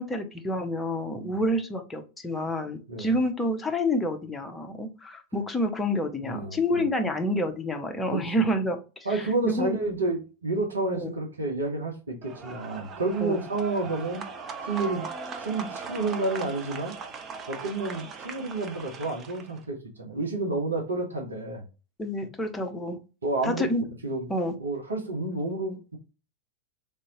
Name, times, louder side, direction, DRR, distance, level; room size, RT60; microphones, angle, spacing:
voice 1, 0.0-9.8 10.9-11.1 13.2-13.4 22.0-23.0 23.4-23.8 24.3-24.5, left 1 dB, 10° left, 4 dB, 0.7 m, -28 dB
voice 2, 6.2-6.9 8.1-8.2 9.0-14.2 14.6-15.1 15.4-16.9 17.5-21.6 23.2-23.6 24.0-24.3 24.6-26.0, right 2 dB, 75° right, 1 dB, 1.0 m, -30 dB
sound 1, 12.2-19.6, right 5 dB, 25° right, 0.6 m, -39 dB
3.5 x 2.7 x 2.9 m, 0.31 s
figure-of-eight pair, 90°, 0 cm